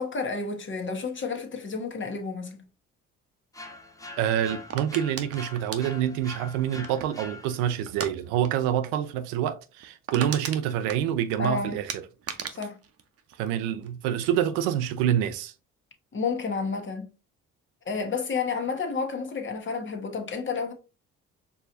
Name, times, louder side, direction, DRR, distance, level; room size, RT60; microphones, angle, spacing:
voice 1, 0.0-2.6 11.4-11.8 12.5-12.8 16.1-17.1 17.8-20.7, left 5 dB, 40° left, 1.2 m, -30 dB
sound 1, 3.5-7.9, left 2 dB, 10° left, 0.7 m, -44 dB
voice 2, 4.2-12.0 13.4-15.5, right 10 dB, 90° right, 0.5 m, -27 dB
sound 2, 4.7-7.3 7.9-8.1 8.4-8.7 8.9-9.0 9.5-9.6 9.8-11.5 11.9-13.9 14.2-14.7, right 7 dB, 50° right, 0.8 m, -37 dB
4.7 x 3.0 x 2.5 m
supercardioid pair, 60°, 31 cm